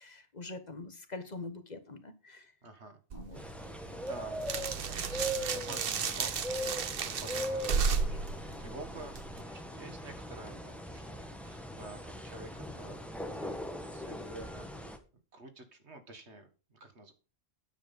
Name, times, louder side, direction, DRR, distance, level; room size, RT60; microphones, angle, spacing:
voice 1, 0.0-2.5 3.1-3.4, left 3 dB, 40° left, 8 dB, 1.3 m, -44 dB
voice 2, 2.6-3.0 3.3-3.5 3.8-6.3 6.6-13.1 13.4-13.6 13.9-15.0 15.3-17.1, right 2 dB, 85° right, 6 dB, 2.0 m, -50 dB
sound 1, 3.1-9.4, right 6 dB, 60° right, 1.0 m, -34 dB
sound 2, 3.3-15.0, equal, ahead, 1.3 m, -40 dB
9.6 x 7.6 x 5.4 m, 0.34 s
omnidirectional pair, 1.1 m